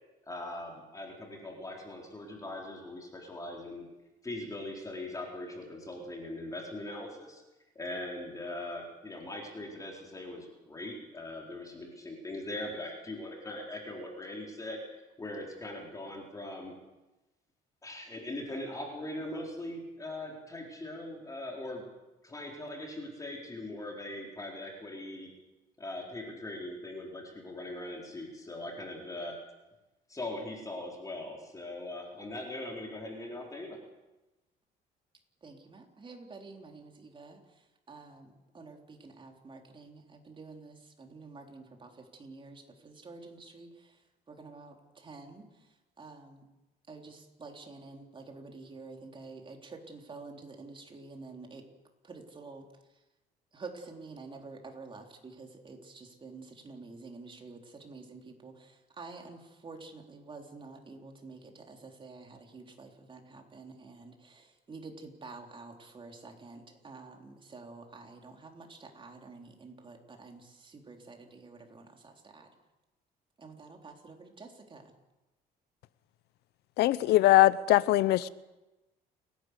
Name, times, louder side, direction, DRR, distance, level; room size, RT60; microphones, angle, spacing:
voice 1, 0.3-3.9 4.2-7.4 7.7-14.8 15.2-16.7 17.8-21.8 22.2-25.3 25.8-29.4 30.1-33.8, left 1 dB, 20° left, 0 dB, 4.2 m, -40 dB
voice 2, 35.4-37.4 37.9-44.0 44.3-45.4 46.0-46.4 46.9-51.6 52.0-52.7 53.5-72.5 73.4-74.8, right 3 dB, 30° right, 2 dB, 3.6 m, -49 dB
voice 3, 76.8-78.3, left 15 dB, 75° left, 18 dB, 0.7 m, -22 dB
29.5 x 11.5 x 8.2 m, 1.0 s
cardioid pair, 110°, 17 cm